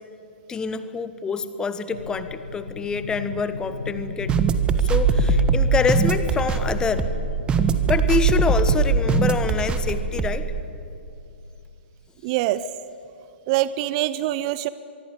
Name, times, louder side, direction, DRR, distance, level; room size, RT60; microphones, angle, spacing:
voice 1, 0.5-4.3 4.8-7.1 7.8-10.5, left 5 dB, 10° left, 12 dB, 1.3 m, -26 dB
sound 1, 1.9-9.6, left 4 dB, 70° left, 1.3 m, -33 dB
sound 2, 4.3-10.6, right 5 dB, 15° right, 1.4 m, -21 dB
voice 2, 12.2-12.6 13.5-14.7, right 15 dB, 35° right, 16 dB, 0.7 m, -24 dB
24.0 x 23.5 x 8.8 m, 2.7 s
figure-of-eight pair, 115°, 6 cm